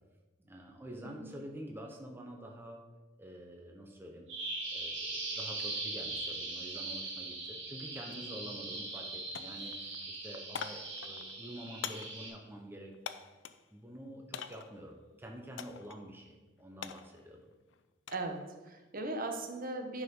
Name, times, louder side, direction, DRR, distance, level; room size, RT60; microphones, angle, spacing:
voice 1, 0.4-2.8 3.2-4.3 4.7-9.7 10.1-12.9 13.7-17.5, equal, 10° right, 1 dB, 0.9 m, -47 dB
Bird vocalization bird call bird song, 4.3-12.3, right 2 dB, 70° right, 2.4 m, -40 dB
sound 1, 8.1-8.2 8.6-9.1 9.3-13.7 14.3-14.8 15.6-16.0 16.3-18.3 18.7-19.1, left 7 dB, 70° left, 0.5 m, -45 dB
voice 2, 18.1-20.0, right 2 dB, 50° right, 5 dB, 1.0 m, -38 dB
10.0 x 5.0 x 5.3 m, 1.2 s
head